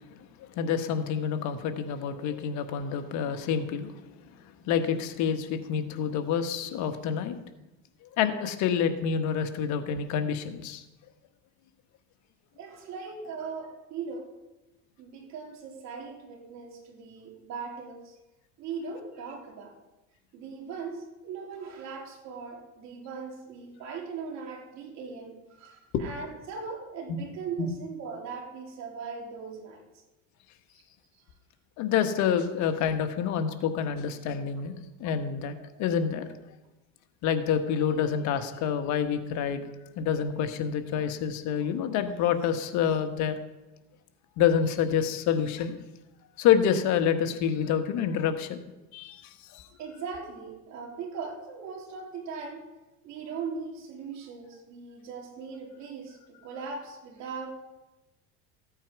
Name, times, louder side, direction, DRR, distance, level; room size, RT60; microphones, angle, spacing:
voice 1, 0.4-4.2 4.6-7.4 8.0-10.8 25.9-26.1 27.1-27.2 27.6-27.7 31.8-36.3 37.2-39.6 40.0-43.4 44.4-45.8 46.4-48.6 48.9-49.7, left 8 dB, 60° left, 7 dB, 1.4 m, -27 dB
voice 2, 12.6-14.3 15.0-18.2 18.6-19.8 20.3-29.8 35.5-35.8 49.8-52.7 53.0-57.5, right 5 dB, 55° right, 0 dB, 3.4 m, -39 dB
15.0 x 8.6 x 4.7 m, 1.0 s
supercardioid pair, 110°, 33 cm